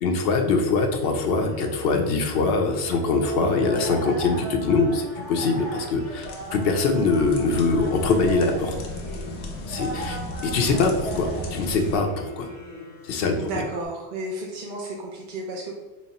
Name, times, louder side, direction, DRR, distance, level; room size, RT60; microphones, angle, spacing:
voice 1, 0.0-8.7 9.7-12.5 13.0-13.5, left 3 dB, 65° left, 4 dB, 0.7 m, -23 dB
sound 1, 0.9-13.9, right 1 dB, 80° right, 2.0 m, -37 dB
sound 2, 6.2-12.0, left 1 dB, 90° left, 1.0 m, -35 dB
voice 2, 13.3-15.8, right 2 dB, 55° right, -1 dB, 0.6 m, -33 dB
4.1 x 2.1 x 4.0 m, 1.2 s
omnidirectional pair, 1.2 m